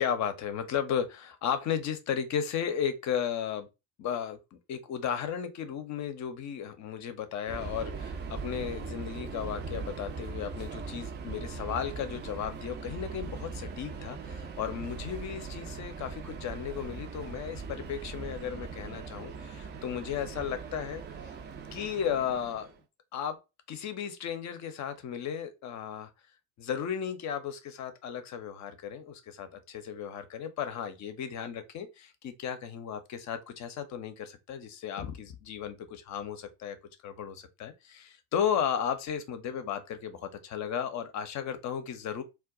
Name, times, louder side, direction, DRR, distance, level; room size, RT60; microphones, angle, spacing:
voice 1, 0.0-3.7 4.0-21.0 21.7-22.7 23.1-23.4 23.7-26.1 26.6-36.8 37.0-42.2, left 8 dB, 35° left, 0.6 m, -34 dB
Subway metro underground, 7.5-22.8, right 4 dB, 25° right, 0.4 m, -40 dB
2.2 x 2.1 x 3.6 m
figure-of-eight pair, 60°, 49 cm